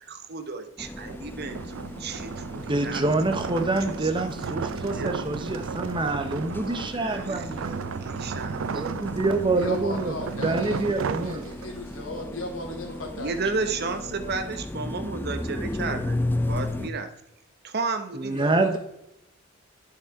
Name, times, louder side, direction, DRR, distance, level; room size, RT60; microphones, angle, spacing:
voice 1, 0.1-3.0 3.9-5.1 6.5-8.6 13.1-17.1 17.6-18.6, right 4 dB, 50° right, 9 dB, 0.9 m, -33 dB
sound 1, 0.8-16.9, left 1 dB, 10° left, 0.5 m, -35 dB
sound 2, 1.0-12.0, right 5 dB, 70° right, 0.4 m, -34 dB
voice 2, 2.6-7.8 8.7-10.2 10.4-11.5 18.2-18.8, right 2 dB, 25° right, 8 dB, 0.8 m, -26 dB
voice 3, 9.5-10.9 11.2-13.3 13.6-14.4 18.3-18.8, left 1 dB, 75° left, 0 dB, 2.6 m, -36 dB
9.8 x 5.8 x 4.8 m, 0.84 s
head